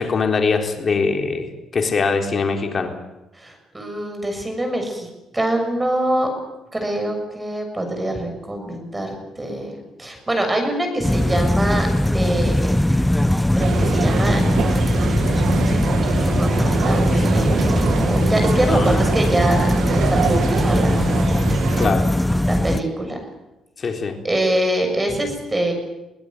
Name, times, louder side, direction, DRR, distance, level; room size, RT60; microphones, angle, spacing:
voice 1, 0.0-1.5 1.7-2.9 18.7-19.0 21.8-22.1 23.8-24.2, left 4 dB, 45° left, 4 dB, 3.9 m, -22 dB
voice 2, 3.3-5.1 5.3-6.3 6.7-11.9 12.1-12.7 13.5-14.4 16.0-21.1 22.5-23.2 24.2-25.7, right 1 dB, 15° right, 4 dB, 6.9 m, -24 dB
sound 1, 11.0-22.8, left 1 dB, 5° left, 0.9 m, -20 dB
sound 2, 13.6-21.9, right 7 dB, 75° right, 2.2 m, -25 dB
23.0 x 17.5 x 9.3 m, 0.97 s
cardioid pair, 90°, 0 cm